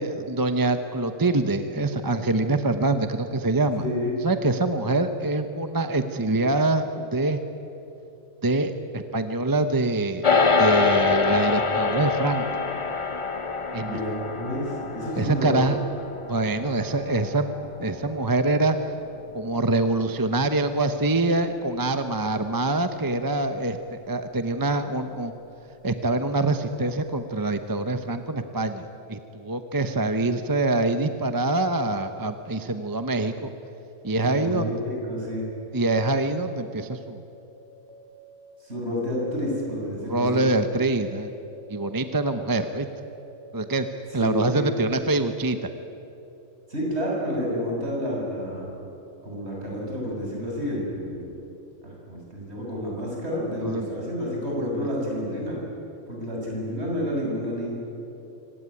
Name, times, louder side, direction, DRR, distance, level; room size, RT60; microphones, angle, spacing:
voice 1, 0.0-3.8 4.2-7.4 8.4-12.4 13.7-14.0 15.2-15.8 16.3-17.5 17.8-18.9 19.3-25.3 25.8-33.5 34.0-34.7 35.7-37.2 40.1-41.3 41.7-42.9 43.5-43.9 44.1-45.6 53.6-53.9, right 2 dB, 20° right, 8 dB, 0.8 m, -25 dB
voice 2, 3.8-4.1 13.9-15.8 34.2-35.5 38.6-40.4 44.1-44.7 46.7-48.7 49.2-51.3 51.8-55.5 56.1-57.8, equal, 55° right, -3 dB, 7.1 m, -30 dB
sound 1, 10.2-19.7, left 4 dB, 30° left, 0.8 m, -26 dB
sound 2, 35.0-35.7 36.4-37.1 37.9-38.6 39.2-39.9 40.5-44.8, right 6 dB, 5° left, 4.1 m, -49 dB
25.0 x 18.0 x 9.9 m, 3.0 s
omnidirectional pair, 1.3 m